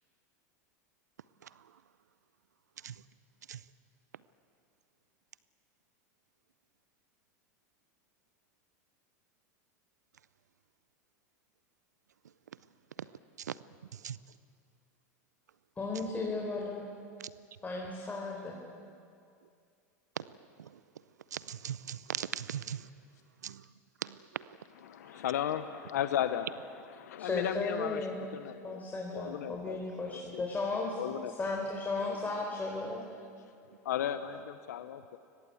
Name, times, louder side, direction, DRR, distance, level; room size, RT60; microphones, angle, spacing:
voice 1, 15.8-16.8 17.6-18.6 27.2-28.1 28.6-31.0 31.4-33.0, left 3 dB, 20° left, 4.2 m, -35 dB
voice 2, 21.3-22.9 23.4-23.6 24.0-24.4, right 9 dB, 90° right, 0.5 m, -38 dB
voice 3, 24.8-28.1 28.3-28.8 29.1-29.8 30.1-30.4 31.0-31.3 33.8-35.2, left 10 dB, 80° left, 0.9 m, -35 dB
23.0 x 21.0 x 8.5 m
hypercardioid pair, 95°, 9 cm